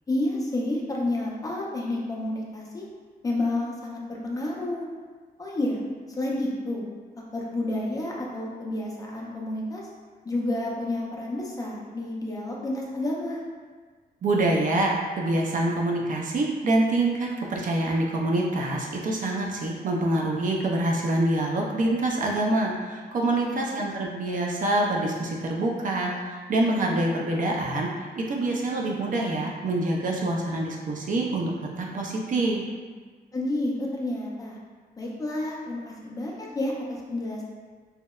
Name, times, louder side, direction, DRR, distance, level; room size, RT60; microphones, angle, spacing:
voice 1, 0.1-2.9 3.2-4.9 5.4-5.8 6.1-6.8 7.3-9.8 10.2-13.4 23.4-23.8 33.3-34.6 35.0-37.4, left 1 dB, 20° left, -3 dB, 0.4 m, -30 dB
voice 2, 14.2-31.5 31.8-32.6, right 2 dB, 55° right, -1 dB, 0.4 m, -26 dB
2.7 x 2.0 x 2.2 m, 1.5 s
wide cardioid pair, 145°, 16 cm